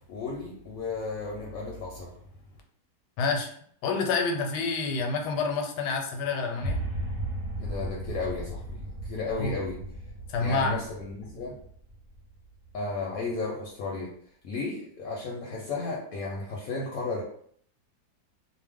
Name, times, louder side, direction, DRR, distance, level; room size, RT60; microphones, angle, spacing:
voice 1, 0.1-2.1 7.6-9.8 10.4-11.6 12.7-14.1 14.4-17.2, left 3 dB, 65° left, -2 dB, 0.9 m, -34 dB
voice 2, 3.2-3.5 3.8-6.8 9.3-9.6 10.3-10.8, left 4 dB, 80° left, 3 dB, 1.2 m, -28 dB
sound 1, 6.6-12.8, right 1 dB, 50° right, 0.7 m, -36 dB
2.7 x 2.1 x 3.4 m, 0.62 s
omnidirectional pair, 1.8 m